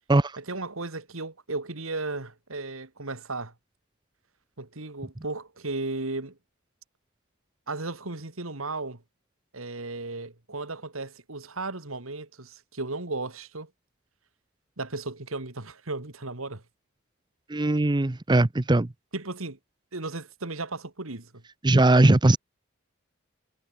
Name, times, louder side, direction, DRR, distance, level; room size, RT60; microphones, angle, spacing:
voice 1, 0.4-3.5 4.6-6.4 7.7-9.0 9.5-13.7 14.8-16.6 19.1-19.6 19.9-21.4, right 3 dB, 75° right, 2.5 m, -35 dB
voice 2, 17.5-18.9 21.6-22.4, right 2 dB, 20° right, 0.7 m, -20 dB
head